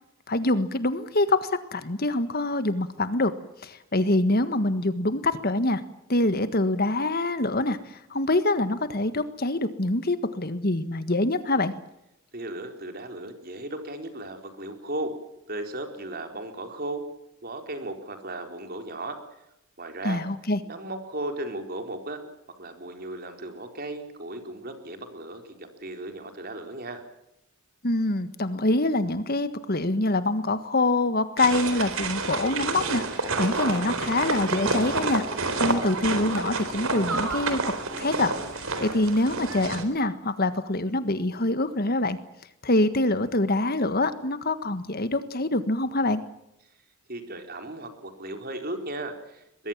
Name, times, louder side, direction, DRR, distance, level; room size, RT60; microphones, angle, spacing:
voice 1, 0.3-3.3 3.6-5.8 6.1-11.7 20.0-20.6 27.8-35.2 35.5-37.6 38.0-42.2 42.6-46.2, left 2 dB, 45° left, 12 dB, 1.6 m, -25 dB
voice 2, 12.3-15.1 15.5-17.0 17.4-19.2 19.8-20.2 20.7-22.2 22.6-27.0 47.1-49.7, right 1 dB, 45° right, 6 dB, 4.3 m, -36 dB
sound 1, 31.4-39.8, right 3 dB, 70° right, 4.1 m, -29 dB
23.5 x 22.0 x 7.4 m, 0.84 s
head